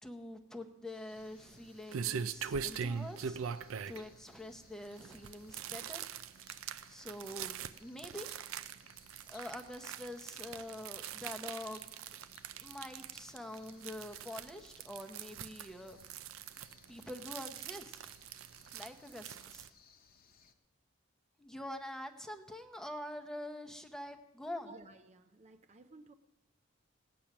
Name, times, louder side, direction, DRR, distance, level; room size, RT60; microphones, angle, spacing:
voice 1, 0.0-3.4 3.9-6.0 6.9-8.3 9.3-12.2 12.5-16.0 16.9-18.0 18.7-19.7 21.4-24.7, left 1 dB, 5° left, 5 dB, 0.7 m, -45 dB
sound 1, 0.9-20.5, left 6 dB, 50° left, 0.9 m, -64 dB
sound 2, 1.1-19.7, right 7 dB, 90° right, 0.4 m, -43 dB
voice 2, 24.6-26.1, right 2 dB, 35° right, 8 dB, 0.5 m, -55 dB
17.5 x 8.6 x 5.9 m, 1.1 s
head